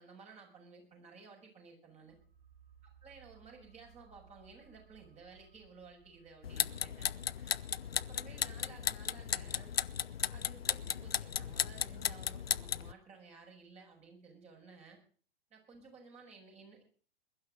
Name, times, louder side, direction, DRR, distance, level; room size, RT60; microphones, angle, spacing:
voice 1, 0.0-2.2 2.8-7.1 7.4-7.6 8.0-9.7 10.3-15.0 15.5-16.8, right 4 dB, 20° right, 1 dB, 6.8 m, -56 dB
sound 1, 2.1-13.4 13.7-13.8, right 6 dB, 70° right, 4.0 m, -65 dB
sound 2, 6.4-12.9, left 8 dB, 75° left, 0.7 m, -35 dB
22.0 x 12.0 x 4.0 m, 0.41 s
figure-of-eight pair, 100°, 30 cm